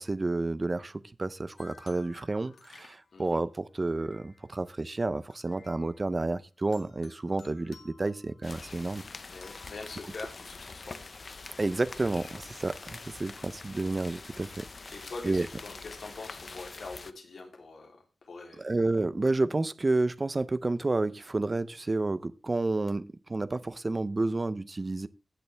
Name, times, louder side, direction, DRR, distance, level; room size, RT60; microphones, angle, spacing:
voice 1, 0.0-9.0 11.6-15.5 18.6-25.1, right 2 dB, 25° right, 0.5 m, -30 dB
sound 1, 1.6-4.7 5.2-6.2 6.7-8.9 9.4-10.6, left 5 dB, 85° left, 2.0 m, -58 dB
sound 2, 8.4-17.1, left 3 dB, 40° left, 0.6 m, -45 dB
voice 2, 9.3-11.0 13.3-13.4 14.9-18.6, left 3 dB, 70° left, 3.1 m, -44 dB
17.0 x 6.6 x 3.4 m
wide cardioid pair, 180°, 0 cm